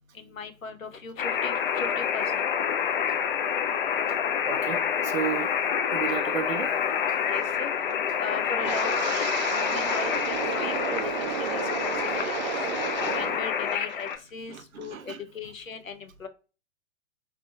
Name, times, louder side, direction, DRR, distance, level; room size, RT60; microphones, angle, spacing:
voice 1, 0.1-2.2 7.3-7.7 8.2-11.3 11.5-12.5 13.1-16.3, left 4 dB, 85° left, 0.7 m, -38 dB
sound 1, 1.2-14.2, left 8 dB, 40° left, 0.5 m, -28 dB
voice 2, 4.5-5.5 5.9-6.7 10.9-11.1 14.5-15.2, right 8 dB, 85° right, 0.6 m, -33 dB
Wind, 8.6-13.4 13.7-14.1 14.6-14.9, right 8 dB, 35° right, 0.4 m, -32 dB
3.3 x 2.7 x 2.6 m
figure-of-eight pair, 110°, 39 cm